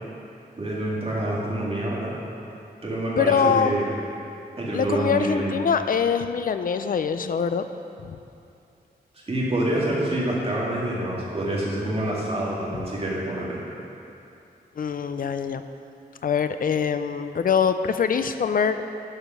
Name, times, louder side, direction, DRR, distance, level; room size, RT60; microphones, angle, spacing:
voice 1, 0.6-2.1 2.8-3.9 4.6-5.6 9.1-13.6, right 1 dB, 35° right, -6 dB, 2.2 m, -27 dB
voice 2, 3.2-3.9 4.7-7.7 8.0-8.2 12.7-12.8 14.8-15.6 16.2-18.8, left 6 dB, 60° left, 10 dB, 0.5 m, -24 dB
12.0 x 5.1 x 6.1 m, 2.7 s
wide cardioid pair, 115°, 17 cm